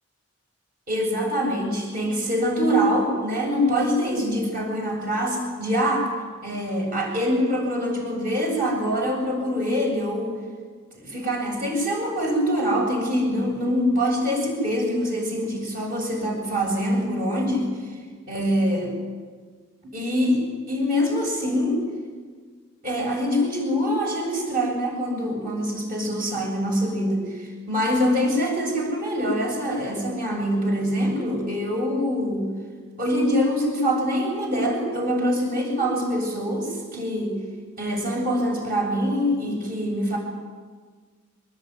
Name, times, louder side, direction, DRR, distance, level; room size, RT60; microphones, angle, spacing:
voice 1, 0.9-6.1 6.4-10.3 10.9-17.6 18.3-18.9 19.9-20.4 20.7-21.8 22.8-32.5 33.0-37.4 37.8-40.2, equal, 40° right, 0 dB, 7.7 m, -24 dB
24.5 x 21.0 x 9.7 m, 1.5 s
head